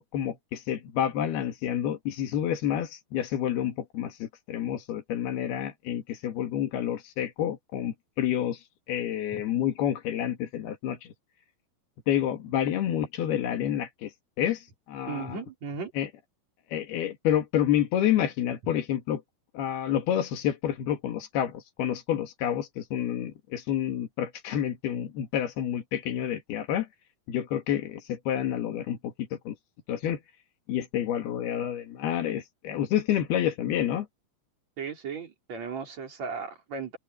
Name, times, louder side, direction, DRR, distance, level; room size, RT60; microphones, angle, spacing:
voice 1, 0.0-8.6 8.9-11.0 12.1-14.1 14.4-15.4 16.0-16.1 16.7-19.2 19.5-26.9 27.3-29.6 29.9-30.2 30.7-34.1, left 10 dB, 85° left, 4.0 m, -29 dB
voice 2, 15.1-15.9 18.6-18.7 34.8-37.0, right 5 dB, 45° right, 5.0 m, -36 dB
omnidirectional pair, 4.4 m